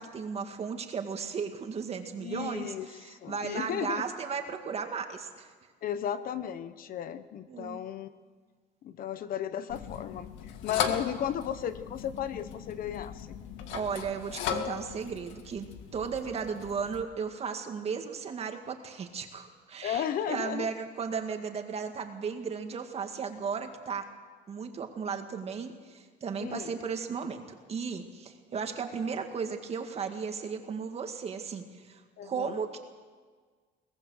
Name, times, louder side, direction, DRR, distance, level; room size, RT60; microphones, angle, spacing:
voice 1, 0.0-5.5 7.5-7.8 13.7-24.1 24.5-27.4 27.7-32.8, right 6 dB, 35° right, 5 dB, 2.0 m, -35 dB
voice 2, 2.2-4.0 5.8-8.1 8.8-13.3 19.8-20.7 26.4-26.8 32.2-32.6, left 9 dB, 50° left, 12 dB, 1.0 m, -35 dB
sound 1, 9.7-17.0, left 8 dB, 80° left, 2.0 m, -38 dB
22.5 x 19.0 x 6.5 m, 1.5 s
cardioid pair, 150°, 19 cm